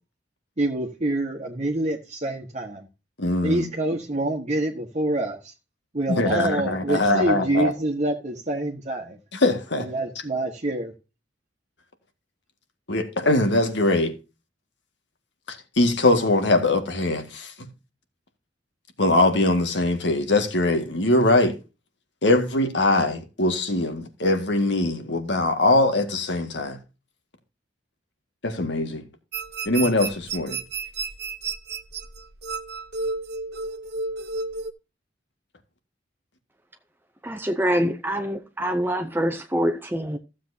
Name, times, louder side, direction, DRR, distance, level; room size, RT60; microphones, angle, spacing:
voice 1, 0.6-2.9 3.4-5.5 5.9-9.2 9.7-10.9, right 1 dB, 40° right, 1.3 m, -26 dB
voice 2, 3.2-3.7 6.1-7.7 9.3-9.9 12.9-14.1 15.5-17.7 19.0-21.6 22.2-26.8 28.4-29.0 29.7-30.6, left 2 dB, 70° left, 1.9 m, -22 dB
sound 1, 29.3-34.7, right 4 dB, 60° right, 0.9 m, -32 dB
voice 3, 37.2-40.2, equal, 10° right, 0.7 m, -25 dB
15.0 x 7.5 x 2.8 m
head